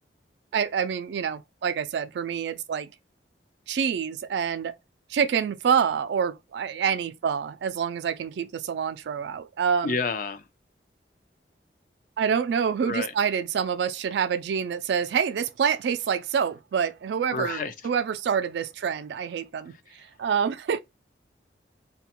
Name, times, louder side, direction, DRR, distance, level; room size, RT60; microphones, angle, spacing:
voice 1, 0.5-2.9 3.7-4.7 5.1-10.0 12.2-20.8, right 7 dB, 70° right, 0.3 m, -27 dB
voice 2, 9.8-10.5 12.8-13.1 17.3-17.7 19.9-20.1, left 4 dB, 45° left, 0.3 m, -30 dB
2.3 x 2.2 x 2.8 m
head